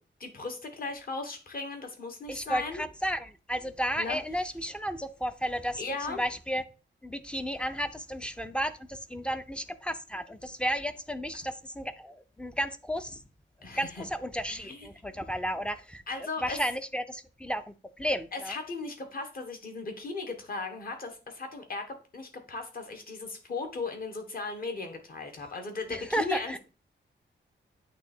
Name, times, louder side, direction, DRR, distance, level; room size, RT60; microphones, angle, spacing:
voice 1, 0.2-2.8 4.0-4.2 5.8-6.2 13.6-14.0 14.5-14.9 16.1-16.6 18.3-21.8 22.1-26.6, left 3 dB, 45° left, 1.4 m, -37 dB
voice 2, 2.3-5.8 6.1-6.6 7.0-13.2 13.6-16.0 16.4-18.6 25.9-26.6, equal, 5° left, 0.4 m, -33 dB
8.5 x 3.3 x 4.3 m
wide cardioid pair, 170°, 20 cm